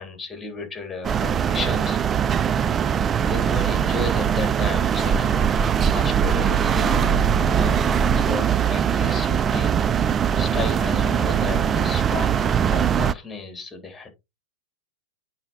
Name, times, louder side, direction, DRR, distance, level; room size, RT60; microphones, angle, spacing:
voice 1, 0.0-2.0 2.8-9.8 10.4-14.1, left 3 dB, 10° left, 3.2 m, -34 dB
sound 1, 1.0-13.1, right 8 dB, 25° right, 0.4 m, -21 dB
8.8 x 4.2 x 4.0 m
hypercardioid pair, 105°, 0 cm